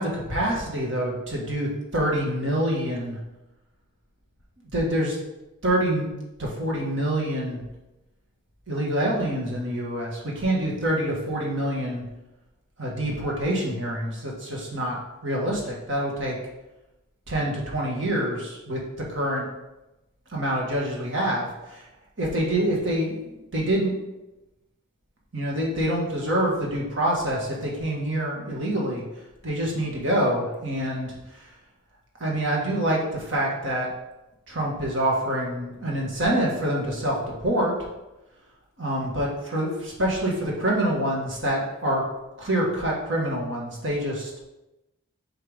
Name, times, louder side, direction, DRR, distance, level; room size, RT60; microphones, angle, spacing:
voice 1, 0.0-3.2 4.7-5.2 5.6-6.1 6.4-7.6 8.7-12.0 12.8-15.0 15.2-16.4 17.3-18.8 19.1-19.5 20.3-21.8 22.2-23.9 25.3-29.0 29.4-31.1 32.2-33.9 34.5-37.7 38.8-42.0 42.4-44.3, right 1 dB, 60° right, -3 dB, 1.9 m, -26 dB
7.6 x 4.6 x 3.7 m, 0.97 s
head